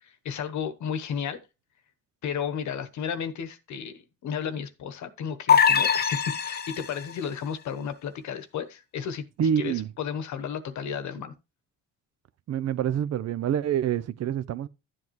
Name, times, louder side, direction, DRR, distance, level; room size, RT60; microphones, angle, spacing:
voice 1, 0.2-1.4 2.2-9.2 9.6-11.3, left 7 dB, 70° left, 1.1 m, -33 dB
sound 1, 5.5-7.1, left 7 dB, 35° left, 0.7 m, -22 dB
voice 2, 9.4-9.9 12.5-14.7, right 9 dB, 60° right, 0.6 m, -26 dB
12.0 x 7.6 x 3.1 m
cardioid pair, 90°, 30 cm